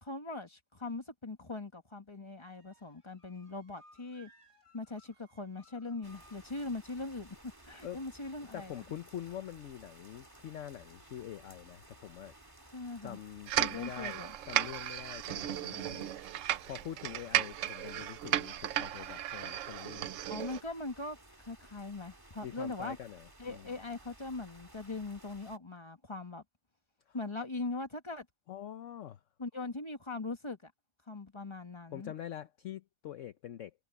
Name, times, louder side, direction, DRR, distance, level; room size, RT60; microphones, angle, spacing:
voice 1, 0.0-4.3 4.7-7.4 7.7-8.7 12.7-13.2 13.6-14.3 20.3-23.0 23.4-26.4 27.1-28.3 29.4-30.7 31.1-32.1, left 3 dB, 20° left, 1.6 m, -41 dB
sound 1, 2.4-6.7, equal, 45° right, 8.4 m, -64 dB
sound 2, 6.0-25.6, right 1 dB, 15° right, 2.3 m, -57 dB
voice 2, 8.5-12.3 13.0-16.1 16.7-20.2 22.4-23.7 27.1-27.2 28.5-29.2 31.9-33.7, left 10 dB, 60° left, 1.0 m, -45 dB
sound 3, 13.5-20.6, right 12 dB, 70° right, 0.9 m, -35 dB
omnidirectional pair, 1.6 m